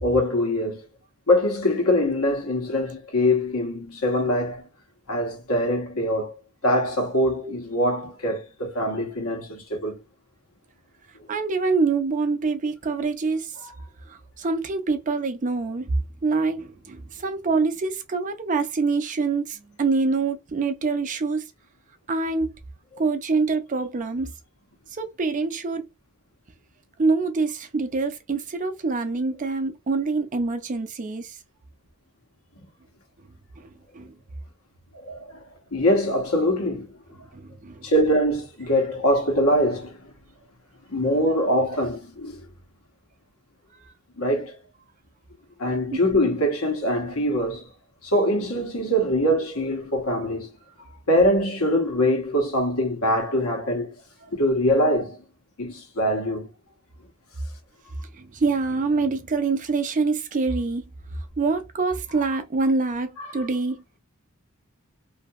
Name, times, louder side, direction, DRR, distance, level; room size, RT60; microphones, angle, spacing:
voice 1, 0.0-0.8 1.3-4.6 5.1-6.3 6.6-10.0 13.6-13.7 35.0-35.2 35.7-36.9 37.8-40.0 40.9-42.4 44.2-44.5 45.6-47.7 48.0-50.5 51.1-53.9 54.3-55.2 55.6-56.5, equal, 80° left, 1.1 m, -23 dB
voice 2, 11.3-13.5 14.1-15.9 16.2-21.4 22.1-22.5 23.0-24.3 24.9-25.8 27.0-31.4 33.6-34.2 37.3-37.9 45.9-46.0 58.1-60.8 61.4-63.8, right 4 dB, 35° right, 0.5 m, -25 dB
2.7 x 2.6 x 2.3 m
head